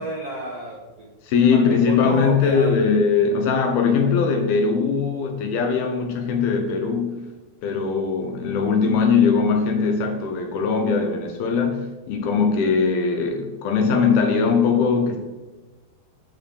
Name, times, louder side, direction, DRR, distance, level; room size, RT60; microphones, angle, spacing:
voice 1, 0.0-2.8 12.2-12.3, right 1 dB, 45° right, -3 dB, 2.4 m, -32 dB
voice 2, 1.2-7.3 7.6-15.2, left 5 dB, 70° left, 4 dB, 2.7 m, -20 dB
11.5 x 4.8 x 6.4 m, 1.2 s
omnidirectional pair, 4.9 m